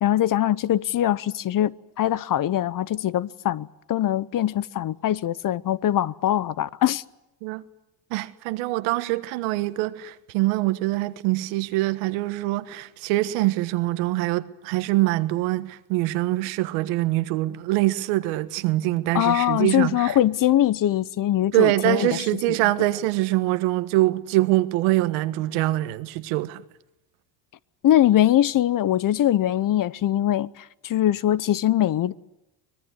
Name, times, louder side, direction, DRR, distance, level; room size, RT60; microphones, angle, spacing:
voice 1, 0.0-7.0 19.1-22.2 27.8-32.1, left 12 dB, 45° left, 0.9 m, -22 dB
voice 2, 8.1-20.2 21.5-26.6, right 18 dB, 90° right, 1.5 m, -24 dB
24.5 x 20.0 x 9.7 m
supercardioid pair, 100°, 46 cm